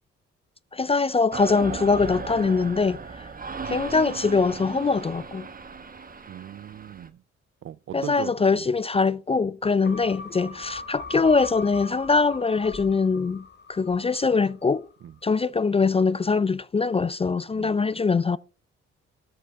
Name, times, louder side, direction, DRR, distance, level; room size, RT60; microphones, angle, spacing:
voice 1, 0.7-3.0 3.6-5.5 7.9-14.8 15.2-18.4, left 4 dB, 20° left, 0.3 m, -23 dB
sound 1, 1.3-7.1, right 5 dB, 30° right, 1.1 m, -36 dB
voice 2, 6.3-7.2 7.6-8.7 15.0-15.1 17.5-17.8, right 10 dB, 45° right, 0.4 m, -39 dB
sound 2, 9.8-14.5 14.9-15.0, left 3 dB, 35° left, 1.4 m, -40 dB
13.0 x 5.8 x 3.4 m
supercardioid pair, 55°, 29 cm